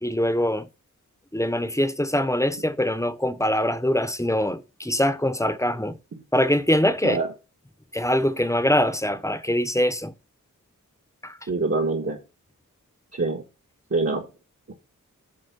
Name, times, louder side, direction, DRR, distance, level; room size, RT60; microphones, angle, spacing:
voice 1, 0.0-0.7 1.3-6.0 6.3-7.2 7.9-10.1 11.2-11.4, left 1 dB, 10° left, 1.0 m, -23 dB
voice 2, 11.5-12.2 13.1-13.4 13.9-14.3 14.7-14.8, right 3 dB, 50° right, 1.7 m, -25 dB
9.5 x 3.5 x 6.9 m
cardioid pair, 40°, 33 cm